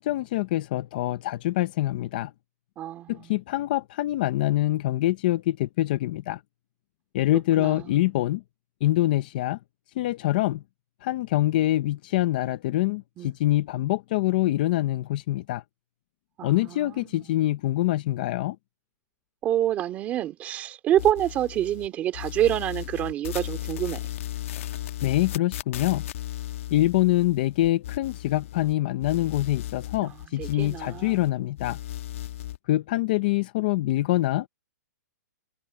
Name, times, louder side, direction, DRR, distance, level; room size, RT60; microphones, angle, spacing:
voice 1, 0.0-2.3 3.1-6.4 7.1-8.4 8.8-9.6 10.0-10.6 11.0-15.6 16.4-18.6 25.0-26.0 26.7-31.8 32.7-34.5, left 15 dB, 30° left, 0.6 m, -25 dB
voice 2, 2.8-3.4 7.6-8.0 13.2-13.3 16.4-17.3 19.4-24.0 30.0-30.1 30.4-31.2, right 12 dB, 15° right, 2.4 m, -27 dB
sound 1, 21.0-21.9 22.1-28.7 29.0-31.3 31.6-32.6, left 12 dB, 45° left, 1.6 m, -36 dB
hypercardioid pair, 175°, 9 cm